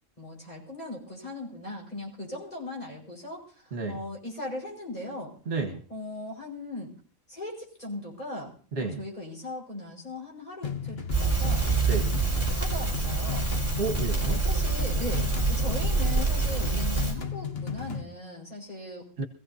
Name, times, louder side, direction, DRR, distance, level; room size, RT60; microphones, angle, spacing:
voice 1, 0.2-5.3 5.9-6.9 7.3-11.7 12.5-13.5 14.3-19.1, left 2 dB, 30° left, -1 dB, 5.4 m, -39 dB
voice 2, 5.5-5.8 8.7-9.0 11.8-12.1 13.8-14.4 19.2-19.3, right 3 dB, 60° right, 4 dB, 1.7 m, -31 dB
sound 1, 10.6-18.0, left 7 dB, 50° left, 1.3 m, -35 dB
Crackle, 11.1-17.1, right 4 dB, 10° right, 3.3 m, -26 dB
24.5 x 16.0 x 2.8 m, 0.40 s
omnidirectional pair, 1.4 m